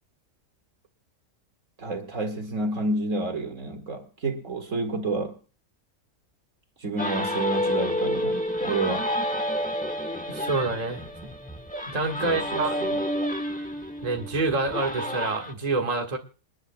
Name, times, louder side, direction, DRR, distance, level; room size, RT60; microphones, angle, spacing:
voice 1, 1.8-5.3 6.8-9.0 12.2-13.0, right 2 dB, 65° right, 2.3 m, -29 dB
sound 1, 7.0-15.5, left 1 dB, 5° left, 1.0 m, -29 dB
voice 2, 10.3-11.1 11.9-12.8 14.0-16.2, right 3 dB, 30° right, 1.6 m, -27 dB
28.0 x 10.5 x 2.2 m
omnidirectional pair, 1.5 m